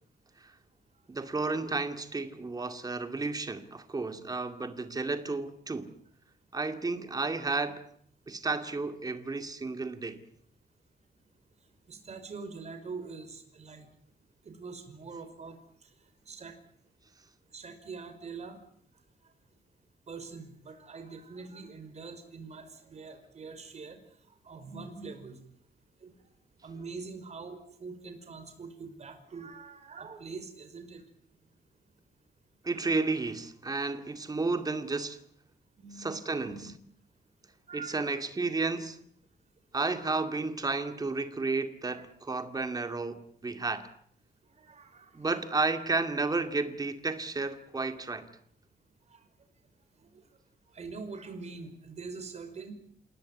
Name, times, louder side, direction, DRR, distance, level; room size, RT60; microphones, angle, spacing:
voice 1, 1.1-5.9 6.5-7.8 8.3-10.2 32.6-35.2 36.0-36.7 37.7-39.0 39.7-43.9 45.1-48.3, right 3 dB, 20° right, 2.2 m, -32 dB
voice 2, 11.9-13.9 14.4-15.6 16.3-16.5 17.5-18.6 20.1-24.0 24.4-25.4 26.0-26.1 26.6-31.0 34.4-34.5 35.8-36.7 37.7-38.2 41.9-42.0 44.6-45.2 49.1-49.2 50.1-50.2 50.7-52.7, right 4 dB, 40° right, 5.3 m, -44 dB
28.5 x 18.0 x 9.7 m
wide cardioid pair, 165°, 17 cm